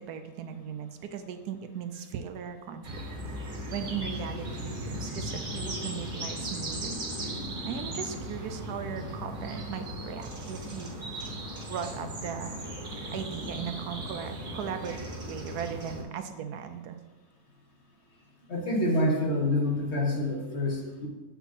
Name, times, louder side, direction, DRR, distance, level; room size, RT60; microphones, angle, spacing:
voice 1, 0.0-3.0 3.5-7.0 7.6-11.0 11.7-12.6 13.1-17.0, right 7 dB, 75° right, 7 dB, 1.1 m, -38 dB
sound 1, 2.8-16.0, right 1 dB, 35° right, 1.1 m, -37 dB
voice 2, 18.5-21.1, left 1 dB, 45° left, 1 dB, 1.4 m, -27 dB
6.9 x 5.6 x 4.2 m, 1.2 s
omnidirectional pair, 1.7 m